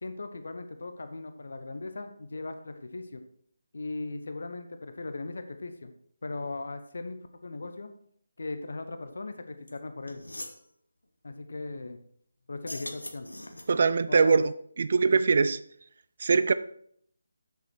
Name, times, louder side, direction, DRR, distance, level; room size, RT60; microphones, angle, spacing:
voice 1, 0.0-3.2 3.7-5.9 6.2-7.2 7.4-7.9 8.4-10.2 11.2-12.0 12.5-13.3 14.1-14.4, left 3 dB, 60° left, 8 dB, 0.9 m, -38 dB
sound 1, 9.7-9.8 10.1-10.6 12.5-13.9, left 1 dB, 85° left, 1.2 m, -41 dB
voice 2, 13.7-14.5 14.8-15.6 16.2-16.5, right 4 dB, 50° right, 15 dB, 0.4 m, -22 dB
8.1 x 6.8 x 4.6 m, 0.66 s
figure-of-eight pair, 150°, 0 cm